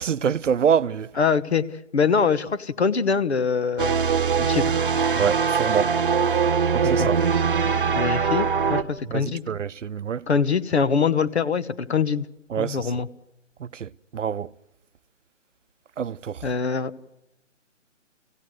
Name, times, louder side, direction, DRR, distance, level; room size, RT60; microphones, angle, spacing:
voice 1, 0.0-1.1 5.2-6.0 6.7-7.2 9.1-10.3 12.5-12.9 13.6-14.5 16.0-16.4, right 7 dB, 75° right, 0.7 m, -25 dB
voice 2, 1.2-1.6 1.9-4.0 4.4-4.7 7.0-7.1 7.9-9.4 10.3-12.3 12.6-13.1 16.4-16.9, left 5 dB, 60° left, 1.1 m, -23 dB
sound 1, 3.8-8.8, right 6 dB, 45° right, 1.0 m, -22 dB
25.0 x 16.5 x 7.8 m
hypercardioid pair, 175°, 38 cm